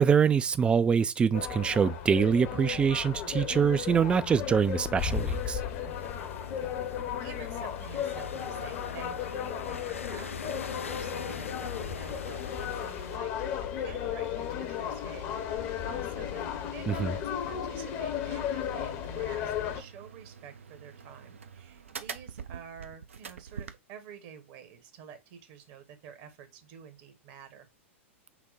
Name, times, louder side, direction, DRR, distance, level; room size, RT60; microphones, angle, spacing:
voice 1, 0.0-5.6 16.9-17.1, right 6 dB, 15° right, 0.3 m, -25 dB
sound 1, 1.3-19.8, left 9 dB, 40° left, 0.9 m, -35 dB
sound 2, 5.0-13.2, left 6 dB, 80° left, 0.4 m, -43 dB
voice 2, 5.8-6.1 6.6-10.5 10.9-15.4 15.8-27.7, right 8 dB, 45° right, 1.0 m, -49 dB
sound 3, 17.8-23.7, right 6 dB, 70° right, 0.5 m, -45 dB
6.0 x 2.2 x 4.0 m
figure-of-eight pair, 100°, 7 cm